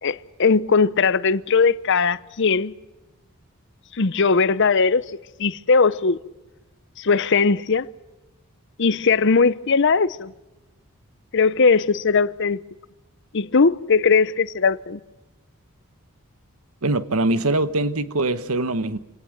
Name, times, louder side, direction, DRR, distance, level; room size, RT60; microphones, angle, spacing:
voice 1, 0.0-2.7 3.9-5.0 5.4-6.2 7.0-7.9 8.8-10.3 11.3-12.6 13.3-15.0, left 4 dB, 55° left, 0.7 m, -19 dB
voice 2, 16.8-19.0, right 2 dB, 75° right, 1.3 m, -22 dB
27.0 x 18.0 x 7.9 m
head